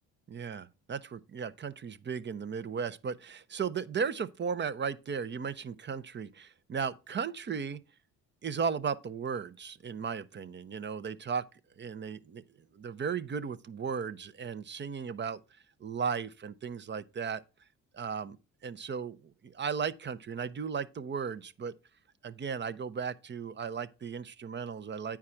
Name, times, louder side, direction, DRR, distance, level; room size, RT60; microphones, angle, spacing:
voice 1, 0.3-7.8 8.4-11.4 11.8-12.4 12.7-15.4 15.8-17.4 17.9-18.4 18.6-19.2 19.4-21.7 22.2-25.2, right 6 dB, 35° right, 0.7 m, -35 dB
8.7 x 4.7 x 5.7 m
supercardioid pair, 70°, 31 cm